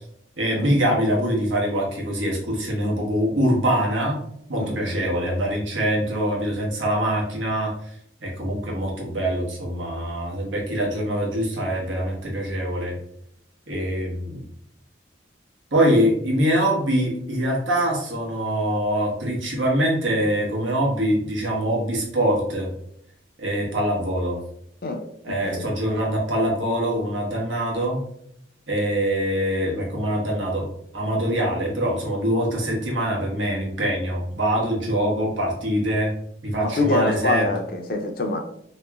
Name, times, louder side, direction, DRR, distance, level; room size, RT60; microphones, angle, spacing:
voice 1, 0.4-4.2 4.5-7.7 8.2-12.9 13.7-14.4 15.7-22.7 23.4-24.4 25.2-28.0 28.7-30.7 30.9-36.1 36.4-37.5, equal, 90° right, -2 dB, 1.1 m, -24 dB
voice 2, 24.8-25.6 36.6-38.4, left 2 dB, 50° left, 4 dB, 0.5 m, -25 dB
3.0 x 2.9 x 2.3 m, 0.71 s
head